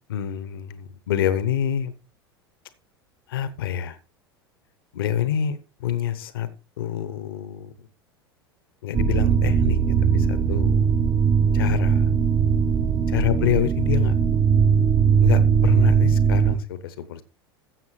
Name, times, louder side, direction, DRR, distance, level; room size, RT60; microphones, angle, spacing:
voice 1, 0.1-1.9 3.3-4.0 4.9-6.5 6.8-7.7 8.8-9.8 10.1-10.9 11.5-12.1 13.1-14.2 15.2-17.2, left 10 dB, 65° left, 0.9 m, -27 dB
sound 1, 8.9-16.6, right 6 dB, 30° right, 1.0 m, -19 dB
13.5 x 7.4 x 3.2 m
figure-of-eight pair, 80°, 13 cm